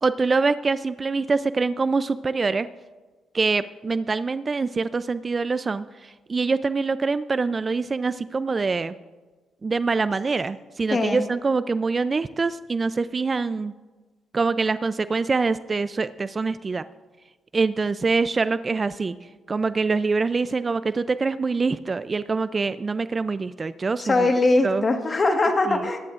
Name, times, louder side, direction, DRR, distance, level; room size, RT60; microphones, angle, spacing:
voice 1, 0.0-2.7 3.3-9.0 9.6-13.7 14.3-16.8 17.5-19.2 19.5-24.3 24.6-24.8 25.7-25.8, right 4 dB, 30° right, 14 dB, 0.3 m, -24 dB
voice 2, 10.9-11.3 24.0-26.0, left 2 dB, 35° left, 5 dB, 1.5 m, -21 dB
22.0 x 10.5 x 2.5 m, 1.3 s
cardioid pair, 90°, 0 cm